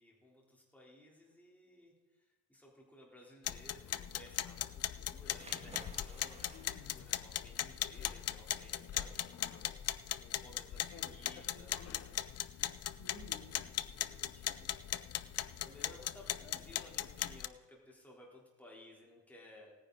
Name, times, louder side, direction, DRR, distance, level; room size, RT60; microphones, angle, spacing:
voice 1, 0.0-9.7 10.2-11.7 13.8-14.7 15.2-19.7, left 1 dB, 5° left, -3 dB, 3.5 m, -58 dB
sound 1, 3.5-17.5, left 11 dB, 40° left, 0.6 m, -39 dB
sound 2, 5.3-14.6, right 3 dB, 20° right, 1.5 m, -60 dB
voice 2, 6.5-7.0 10.9-11.0 11.5-12.1 12.6-13.6, left 3 dB, 75° left, -2 dB, 4.5 m, -55 dB
18.0 x 9.9 x 3.9 m, 1.3 s
cardioid pair, 105°, 37 cm